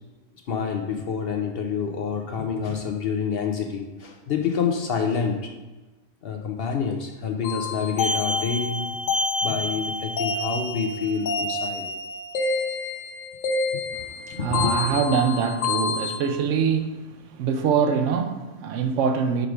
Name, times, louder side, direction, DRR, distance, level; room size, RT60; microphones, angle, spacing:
voice 1, 0.5-5.5 6.2-8.8 9.4-11.9 13.7-13.8 14.4-14.7, left 6 dB, 60° left, 0.8 m, -27 dB
sound 1, 7.4-16.2, left 3 dB, 75° left, 1.1 m, -28 dB
voice 2, 13.9-19.5, right 6 dB, 85° right, 1.0 m, -24 dB
5.1 x 4.7 x 4.9 m
omnidirectional pair, 1.2 m